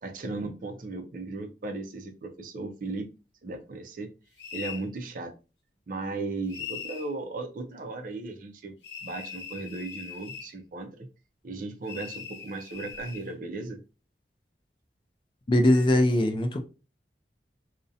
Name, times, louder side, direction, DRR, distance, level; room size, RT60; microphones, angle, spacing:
voice 1, 0.0-3.1 3.4-4.1 4.5-5.3 5.9-8.7 9.0-11.1 11.4-13.8, right 3 dB, 50° right, 0.4 m, -36 dB
sound 1, 4.4-4.9 6.5-7.1 8.8-10.5 11.9-13.3, left 7 dB, 80° left, 0.7 m, -40 dB
voice 2, 15.5-16.6, left 1 dB, 30° left, 0.3 m, -21 dB
2.5 x 2.0 x 2.6 m
head